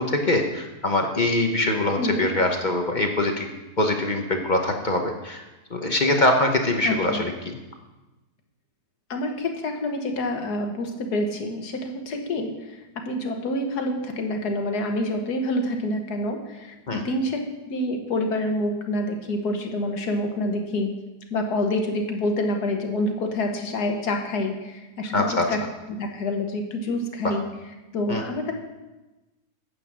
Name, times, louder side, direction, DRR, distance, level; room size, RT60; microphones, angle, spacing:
voice 1, 0.0-3.5 3.8-5.4 5.7-7.5 16.9-17.0 25.1-25.4 28.1-28.2, left 2 dB, 35° left, 3 dB, 0.9 m, -23 dB
voice 2, 2.0-2.3 6.8-7.2 9.1-17.4 17.6-20.9 21.3-25.6 25.9-27.4 27.9-28.5, left 1 dB, 75° left, 4 dB, 1.8 m, -27 dB
9.3 x 8.3 x 6.2 m, 1.1 s
omnidirectional pair, 1.7 m